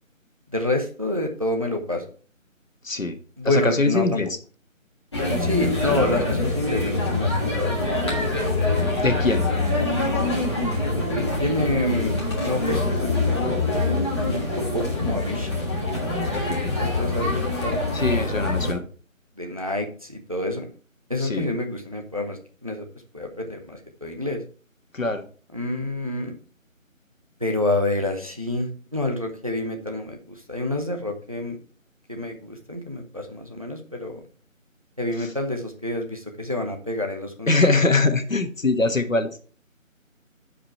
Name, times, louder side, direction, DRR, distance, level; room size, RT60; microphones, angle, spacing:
voice 1, 0.5-2.0 3.4-4.2 5.4-7.8 11.1-12.1 12.4-13.6 14.2-15.5 16.8-17.8 19.4-20.7 21.1-22.9 23.1-24.4 25.5-26.3 27.4-31.6 32.1-34.2 35.0-37.5, left 2 dB, 25° right, 4 dB, 0.8 m, -28 dB
voice 2, 2.8-3.2 3.4-4.4 8.9-9.4 16.3-16.8 17.9-18.8 21.2-21.5 24.9-25.2 35.2-35.3 37.5-39.3, left 3 dB, 75° left, 8 dB, 1.4 m, -23 dB
sound 1, 5.1-18.7, left 2 dB, 20° left, 1.6 m, -24 dB
9.7 x 5.0 x 4.4 m, 0.41 s
figure-of-eight pair, 160°, 41 cm